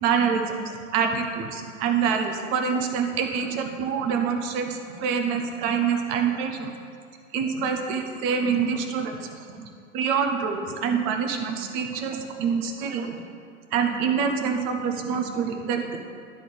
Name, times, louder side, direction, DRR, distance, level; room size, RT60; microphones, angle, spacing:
voice 1, 0.0-0.6 0.9-6.7 7.3-9.3 9.6-9.7 9.9-13.2 13.7-16.0, right 6 dB, 15° right, 4 dB, 0.3 m, -26 dB
11.0 x 4.2 x 6.8 m, 2.3 s
figure-of-eight pair, 100°, 39 cm